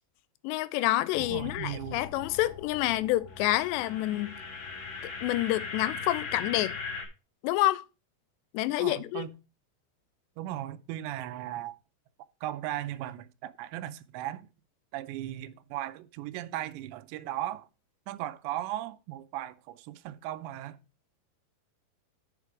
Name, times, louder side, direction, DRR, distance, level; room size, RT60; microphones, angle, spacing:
voice 1, 0.4-4.4 5.2-6.7 7.4-7.8 8.5-9.3, left 16 dB, 85° left, 2.8 m, -28 dB
sound 1, 1.1-7.1, left 4 dB, 60° left, 3.5 m, -40 dB
voice 2, 1.3-2.0 8.8-9.3 10.4-11.8 12.4-14.5 14.9-17.7 18.1-20.8, right 13 dB, 85° right, 2.9 m, -37 dB
9.0 x 6.0 x 4.8 m
omnidirectional pair, 4.9 m